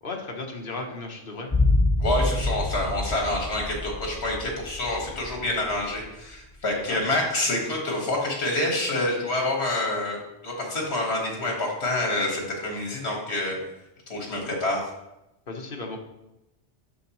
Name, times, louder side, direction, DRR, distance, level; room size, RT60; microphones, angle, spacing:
voice 1, 0.0-1.5 6.9-7.0 15.5-16.0, left 3 dB, 55° left, 2 dB, 1.1 m, -35 dB
sound 1, 1.5-5.7 6.0-6.1, left 2 dB, 10° left, 2.1 m, -26 dB
voice 2, 2.0-13.6 14.1-14.9, left 1 dB, 70° left, 0 dB, 1.9 m, -27 dB
7.7 x 6.4 x 3.0 m, 0.92 s
omnidirectional pair, 1.1 m